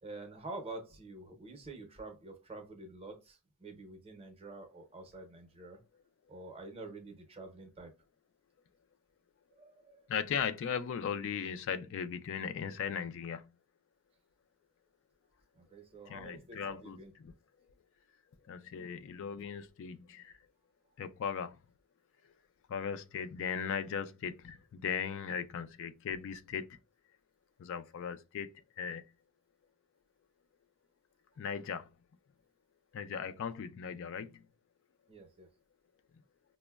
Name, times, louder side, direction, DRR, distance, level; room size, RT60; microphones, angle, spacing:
voice 1, 0.0-5.8 6.3-7.9 9.5-10.0 15.5-17.1 35.1-35.5, right 2 dB, 25° right, 0.6 m, -48 dB
voice 2, 10.1-13.4 16.1-17.0 18.5-20.3 21.0-21.6 22.7-26.8 27.6-28.5 28.8-29.0 31.4-31.9 32.9-34.3, left 7 dB, 60° left, 0.3 m, -37 dB
5.0 x 2.0 x 2.3 m
head